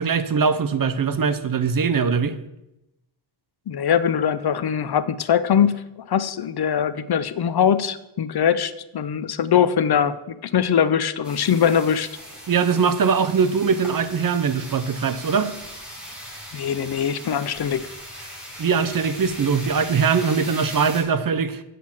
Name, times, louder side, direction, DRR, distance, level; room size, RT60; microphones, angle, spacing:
voice 1, 0.0-2.4 12.5-15.5 18.6-21.6, right 6 dB, 45° right, 12 dB, 0.6 m, -21 dB
voice 2, 3.7-12.1 16.5-17.9, left 8 dB, 55° left, 14 dB, 0.5 m, -22 dB
sound 1, 11.2-21.0, equal, ahead, 2.7 m, -39 dB
8.3 x 5.8 x 7.3 m, 0.91 s
wide cardioid pair, 175°, 47 cm